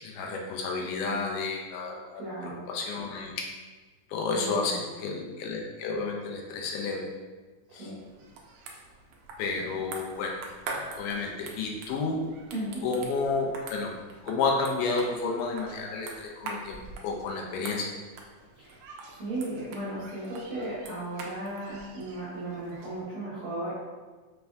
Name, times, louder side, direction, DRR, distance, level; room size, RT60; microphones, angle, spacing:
voice 1, 0.0-2.2 2.7-3.3 4.1-7.1 7.7-7.9 9.4-10.4 11.0-12.2 12.8-13.9 14.2-17.9, left 4 dB, 90° left, 0 dB, 2.1 m, -31 dB
voice 2, 2.1-2.7 4.3-4.8 7.7-8.0 12.5-12.8 18.6-18.8 19.1-23.7, right 1 dB, 60° right, -11 dB, 1.4 m, -36 dB
sound 1, 8.0-23.0, right 3 dB, 80° right, 1.5 m, -44 dB
5.3 x 3.3 x 2.3 m, 1.3 s
omnidirectional pair, 3.6 m